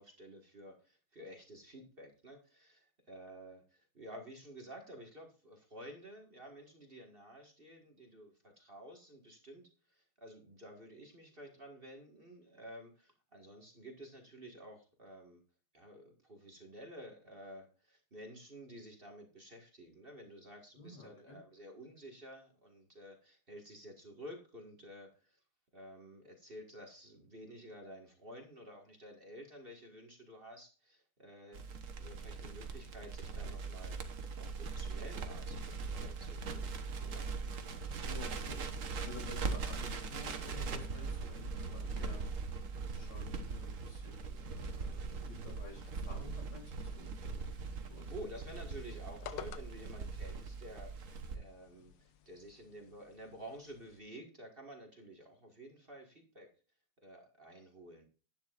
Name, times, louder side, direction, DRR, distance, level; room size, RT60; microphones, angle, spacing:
voice 1, 0.0-15.4 15.7-25.4 25.7-31.6 32.0-37.3 47.8-56.5 57.0-58.0, equal, 30° right, 2 dB, 1.8 m, -52 dB
voice 2, 20.8-21.4 38.0-42.2 42.9-47.4 47.9-48.1, left 4 dB, 85° left, 0 dB, 4.2 m, -52 dB
Crackle, 31.5-51.4, right 4 dB, 45° right, 1.2 m, -41 dB
sound 1, 44.8-54.0, left 10 dB, 70° left, 1.4 m, -55 dB
11.5 x 9.8 x 2.5 m, 0.36 s
omnidirectional pair, 2.3 m